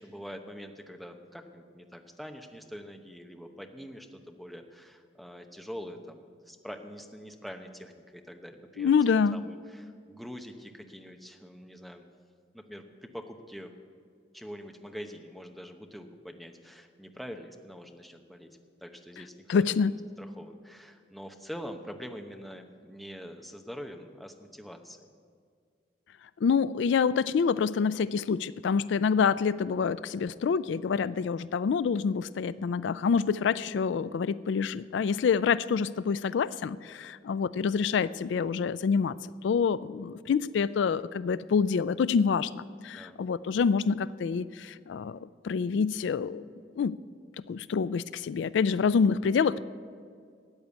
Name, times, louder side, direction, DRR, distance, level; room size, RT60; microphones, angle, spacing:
voice 1, 0.0-12.1 12.5-13.7 14.3-18.5 18.8-25.1 42.9-43.2, equal, ahead, 4 dB, 0.8 m, -44 dB
voice 2, 8.8-9.4 19.5-20.0 26.4-39.1 39.4-46.4 46.8-46.9 47.5-49.6, left 6 dB, 75° left, 17 dB, 0.3 m, -27 dB
13.5 x 8.9 x 8.2 m, 2.2 s
head